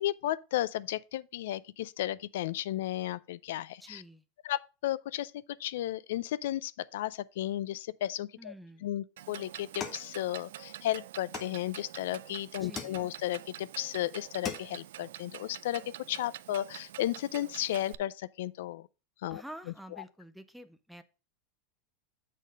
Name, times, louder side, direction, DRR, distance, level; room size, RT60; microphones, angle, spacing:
voice 1, 0.0-4.0 4.4-5.3 5.6-8.5 8.8-18.9 19.2-19.4, left 13 dB, 70° left, 0.4 m, -34 dB
voice 2, 3.8-4.2 8.4-8.9 12.6-13.1 19.3-21.0, right 1 dB, ahead, 0.4 m, -48 dB
Clock, 9.2-18.0, right 13 dB, 80° right, 0.3 m, -47 dB
sound 1, 9.8-10.7 11.3-12.1 12.7-13.4 13.9-14.0 14.3-15.0, left 6 dB, 20° left, 0.8 m, -42 dB
7.3 x 4.1 x 5.0 m
supercardioid pair, 180°, 0 cm